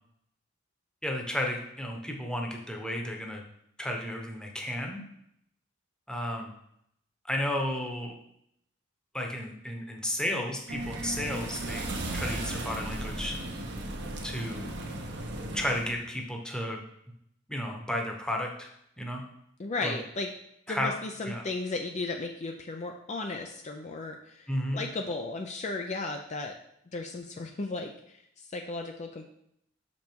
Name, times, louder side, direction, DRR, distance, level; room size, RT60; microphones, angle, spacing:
voice 1, 1.0-3.4 3.8-5.0 6.1-6.5 7.3-8.1 9.1-13.3 14.2-14.7 15.5-16.8 17.5-18.7 19.0-19.2 19.8-20.0 20.7-20.9 21.3-21.4 24.5-24.9, left 1 dB, 5° left, 1 dB, 1.0 m, -33 dB
sound 1, 10.7-15.9, right 1 dB, 60° right, 1.0 m, -36 dB
voice 2, 19.6-20.3 20.7-26.5 26.9-29.3, left 3 dB, 35° left, 3 dB, 0.5 m, -35 dB
6.6 x 5.3 x 4.6 m, 0.75 s
head